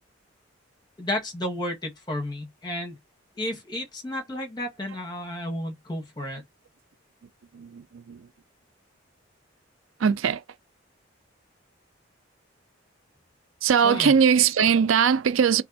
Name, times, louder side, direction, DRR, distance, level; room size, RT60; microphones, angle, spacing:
voice 1, 1.0-3.0 3.3-6.4 13.8-14.1, left 1 dB, 20° left, 1.6 m, -32 dB
voice 2, 7.5-8.3 10.0-10.4 13.6-15.6, right 7 dB, 80° right, 0.4 m, -21 dB
3.4 x 3.2 x 3.9 m
head